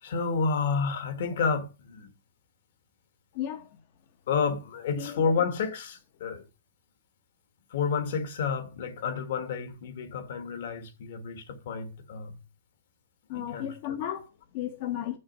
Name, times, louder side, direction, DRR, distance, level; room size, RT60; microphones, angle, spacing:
voice 1, 0.0-2.1 4.3-6.4 7.7-12.4 13.3-14.0, left 5 dB, 55° left, 1.6 m, -30 dB
voice 2, 3.3-3.7 5.0-5.2 13.3-15.2, left 11 dB, 40° left, 0.8 m, -34 dB
7.0 x 6.4 x 5.4 m
hypercardioid pair, 165°, 0 cm